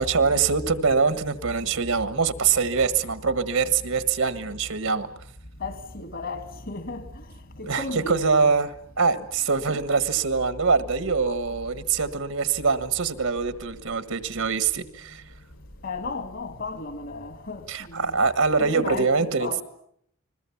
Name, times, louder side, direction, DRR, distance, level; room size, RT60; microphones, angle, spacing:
voice 1, 0.0-5.1 7.6-8.7 9.0-15.2 17.7-19.5, right 5 dB, 75° right, 1.5 m, -24 dB
voice 2, 5.6-8.5 9.7-9.8 15.8-18.2 18.6-19.6, left 3 dB, 55° left, 2.3 m, -34 dB
sound 1, 10.8-19.0, equal, 85° left, 6.1 m, -52 dB
29.5 x 21.5 x 7.2 m
head